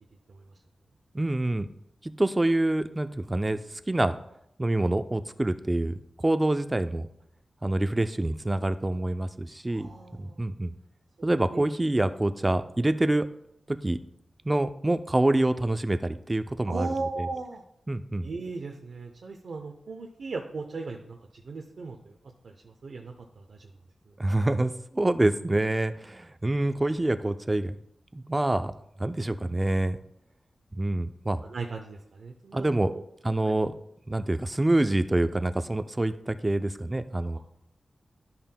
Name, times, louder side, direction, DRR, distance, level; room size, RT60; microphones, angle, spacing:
voice 1, 1.1-1.7 2.0-3.6 3.9-4.2 4.6-7.1 7.6-9.9 10.2-10.7 11.2-13.3 13.7-14.0 14.4-17.3 17.9-18.3 24.2-27.8 28.1-28.7 29.0-30.0 30.7-31.4 32.5-32.9 33.2-33.7 34.1-37.4, right 1 dB, 20° right, 9 dB, 0.4 m, -26 dB
voice 2, 9.7-10.4 11.2-11.6 16.7-17.6 18.2-21.2 21.5-22.1 22.4-23.7 31.5-33.0 33.4-33.6 37.3-37.4, right 3 dB, 70° right, 2 dB, 0.6 m, -37 dB
12.0 x 5.6 x 2.2 m, 0.77 s
wide cardioid pair, 105°, 0 cm